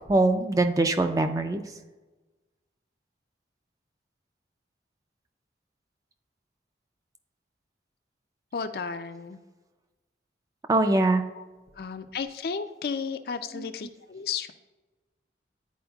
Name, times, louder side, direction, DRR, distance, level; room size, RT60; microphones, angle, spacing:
voice 1, 0.1-1.6 10.7-11.2, right 2 dB, 20° right, 7 dB, 0.3 m, -22 dB
voice 2, 8.5-9.4 11.3-11.5 11.8-14.5, left 6 dB, 55° left, 9 dB, 0.4 m, -33 dB
10.5 x 4.3 x 2.3 m, 1.2 s
head